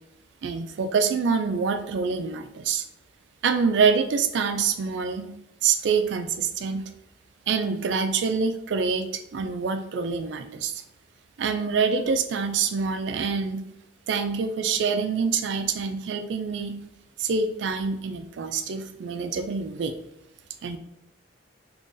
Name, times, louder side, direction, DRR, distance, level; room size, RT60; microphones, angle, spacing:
voice 1, 0.4-2.8 3.4-5.3 5.6-6.8 7.5-10.8 11.4-13.7 14.1-16.8 17.2-19.9 20.6-20.8, right 5 dB, 65° right, 8 dB, 0.3 m, -26 dB
3.8 x 3.0 x 2.5 m, 0.82 s
head